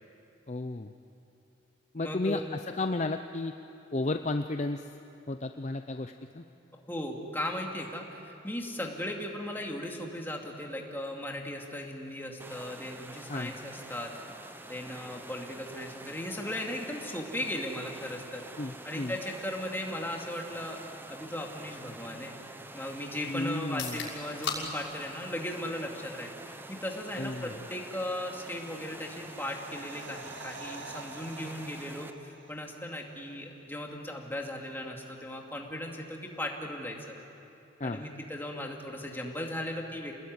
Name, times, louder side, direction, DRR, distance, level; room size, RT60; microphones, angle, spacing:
voice 1, 0.5-0.9 1.9-3.5 3.9-4.9 5.3-6.4 13.3-13.5 18.6-19.1 23.3-24.0 27.2-27.5 37.8-38.0, left 2 dB, 35° left, 7 dB, 0.6 m, -33 dB
voice 2, 2.0-2.5 6.9-14.1 14.6-22.3 22.7-37.2 37.8-40.1, left 1 dB, 10° left, 0 dB, 2.4 m, -37 dB
sound 1, 12.4-32.1, right 1 dB, 10° right, 0.8 m, -47 dB
sound 2, 23.6-37.5, left 5 dB, 70° left, 6.4 m, -47 dB
sound 3, 28.2-33.0 33.3-33.4, right 4 dB, 65° right, 1.9 m, -48 dB
28.0 x 20.0 x 9.6 m, 2.8 s
head